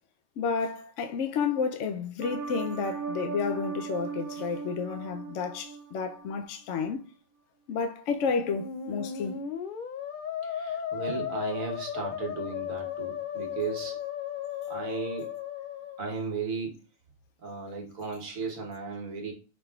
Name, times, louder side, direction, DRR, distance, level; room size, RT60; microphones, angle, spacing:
voice 1, 0.4-7.0 7.7-9.4, left 5 dB, 70° left, 0.9 m, -31 dB
sound 1, 2.2-6.4 6.8-6.9, right 6 dB, 90° right, 1.0 m, -38 dB
Musical instrument, 8.2-16.3, left 9 dB, 85° left, 0.4 m, -36 dB
voice 2, 10.4-14.0 14.7-15.4 16.0-16.8 17.4-19.3, right 4 dB, 75° right, 1.5 m, -35 dB
5.2 x 3.7 x 2.3 m
omnidirectional pair, 1.4 m